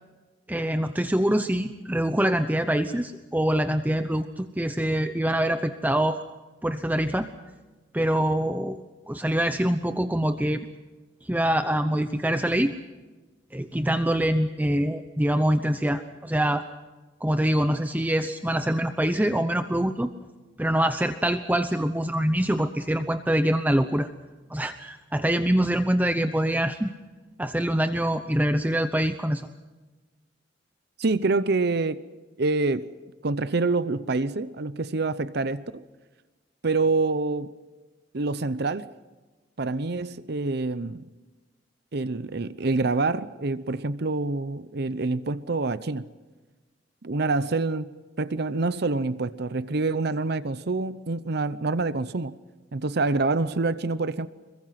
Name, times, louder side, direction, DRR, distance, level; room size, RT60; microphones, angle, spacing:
voice 1, 0.5-6.2 6.6-7.3 7.9-8.8 9.1-10.7 11.2-12.7 13.5-16.6 17.2-20.1 20.6-24.1 24.5-26.9 27.4-29.5, right 1 dB, 10° right, 0.8 m, -24 dB
voice 2, 31.0-32.0 32.4-32.9 33.2-35.8 36.6-37.5 38.1-38.9 39.6-41.1 41.9-46.1 47.0-52.4 52.7-54.3, right 3 dB, 60° right, 0.8 m, -26 dB
26.5 x 23.0 x 5.8 m
head